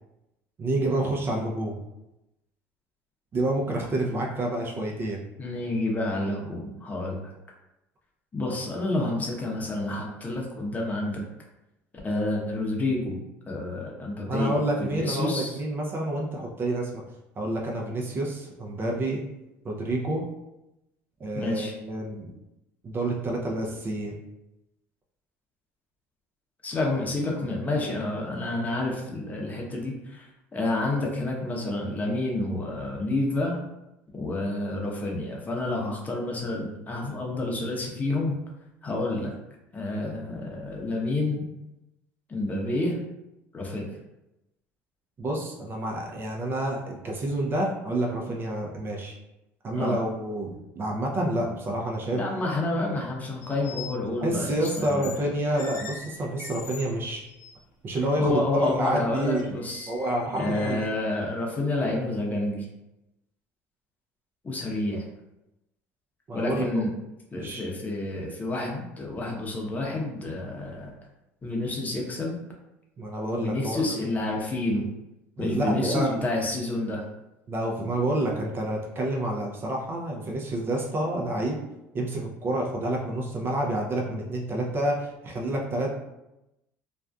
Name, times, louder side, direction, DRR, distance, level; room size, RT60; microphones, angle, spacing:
voice 1, 0.6-1.8 3.3-5.2 14.3-17.0 17.4-19.2 19.6-20.2 21.2-22.3 22.8-24.2 45.2-49.2 49.6-52.2 54.2-57.2 57.8-59.5 59.9-60.9 66.3-66.8 67.4-67.7 73.0-74.2 75.4-76.2 77.5-81.6 81.9-85.9, right 1 dB, 35° right, -1 dB, 0.5 m, -28 dB
voice 2, 5.4-7.3 8.3-11.2 12.0-13.2 13.5-15.6 21.3-21.7 26.6-33.6 34.1-38.3 38.8-39.3 39.7-41.4 42.3-43.0 43.5-43.9 49.7-50.0 52.1-55.1 58.2-59.9 60.3-62.7 64.4-65.0 66.3-66.9 67.3-70.9 71.4-72.4 73.3-74.9 75.4-77.0, left 2 dB, 25° left, -2 dB, 0.7 m, -29 dB
sound 1, 53.4-54.0 54.6-55.2 55.5-56.9 57.3-57.5 58.0-58.1 58.6-60.9, left 5 dB, 80° left, 0.4 m, -42 dB
2.5 x 2.2 x 2.3 m, 0.91 s
supercardioid pair, 85°, 6 cm